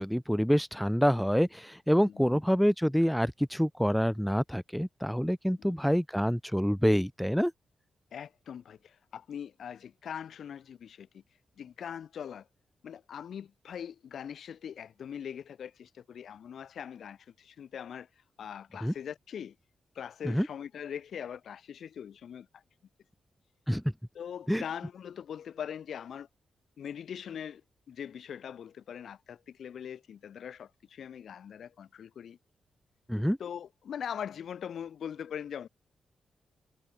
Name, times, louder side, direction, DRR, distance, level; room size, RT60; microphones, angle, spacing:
voice 1, 0.0-7.5 18.8-18.9 20.2-20.5 23.7-23.8 24.5-24.6 33.1-33.4, equal, ahead, 1.2 m, -27 dB
voice 2, 2.1-2.4 5.6-5.8 8.1-11.2 11.6-12.5 12.8-18.1 18.4-19.5 19.9-22.6 24.1-26.3 26.8-27.6 27.9-32.4 33.4-35.7, left 8 dB, 75° left, 4.6 m, -41 dB
cardioid pair, 95°, 0 cm